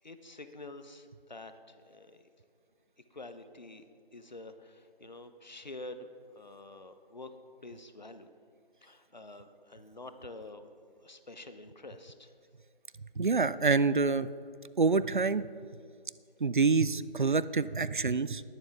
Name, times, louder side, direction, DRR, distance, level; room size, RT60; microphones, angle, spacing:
voice 1, 0.0-2.3 3.1-3.8 4.1-6.1 6.3-7.3 7.6-8.3 8.8-10.7 11.0-12.3, left 2 dB, 50° left, 9 dB, 0.8 m, -47 dB
voice 2, 13.2-14.3 14.8-15.5 16.4-18.4, right 4 dB, 55° right, 16 dB, 0.4 m, -27 dB
19.5 x 7.1 x 3.5 m, 2.3 s
figure-of-eight pair, 165°, 29 cm